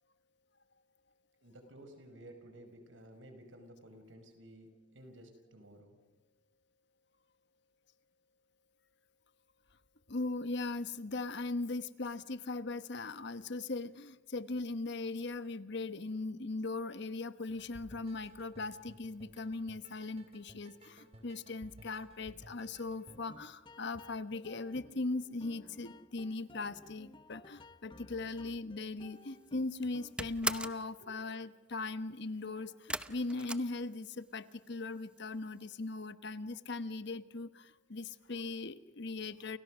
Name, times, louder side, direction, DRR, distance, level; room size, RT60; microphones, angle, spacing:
voice 1, 1.4-6.0 31.0-31.1, right 1 dB, 80° right, 7 dB, 5.1 m, -54 dB
voice 2, 10.1-39.6, left 3 dB, 65° left, 13 dB, 1.2 m, -39 dB
sound 1, 17.5-23.2, equal, 35° right, 3.6 m, -57 dB
sound 2, 23.0-30.4, left 2 dB, 25° left, 1.1 m, -56 dB
sound 3, 29.2-29.5 29.8-30.9 32.9-34.4 34.7-35.3 35.6-35.7 36.0-36.1, right 2 dB, 5° right, 0.8 m, -39 dB
29.5 x 29.5 x 6.3 m, 1.2 s
head